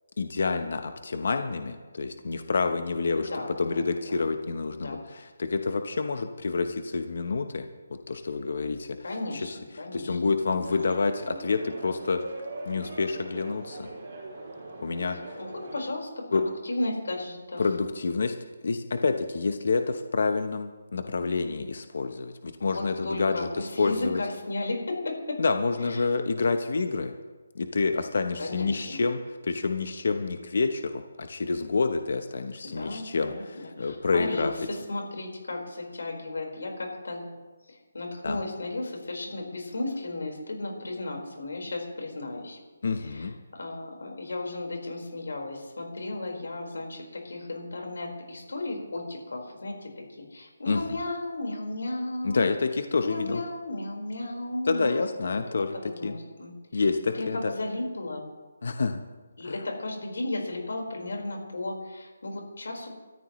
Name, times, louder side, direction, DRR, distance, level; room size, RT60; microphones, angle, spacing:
voice 1, 0.2-3.3 3.6-7.6 8.1-9.0 9.3-9.6 9.9-12.2 12.7-13.9 14.8-15.4 16.3-16.4 17.6-18.3 18.6-24.2 25.4-27.1 27.5-34.5 38.2-38.4 42.8-43.3 50.7-51.0 52.2-53.4 54.6-56.1 56.7-57.5 58.6-59.0 59.4-59.6, left 4 dB, 55° left, 7 dB, 0.9 m, -28 dB
voice 2, 3.2-3.8 4.1-4.2 4.7-5.0 9.0-10.7 15.4-17.6 22.6-25.4 25.8-26.0 28.4-29.0 32.7-37.4 37.7-42.6 43.0-52.5 53.0-55.1 55.5-56.9 57.1-58.3 59.4-62.9, left 2 dB, 80° left, 1 dB, 4.6 m, -35 dB
sound 1, 10.6-15.8, right 2 dB, 30° right, 5.5 m, -41 dB
28.5 x 13.5 x 3.2 m, 1.3 s
hypercardioid pair, 175°, 0 cm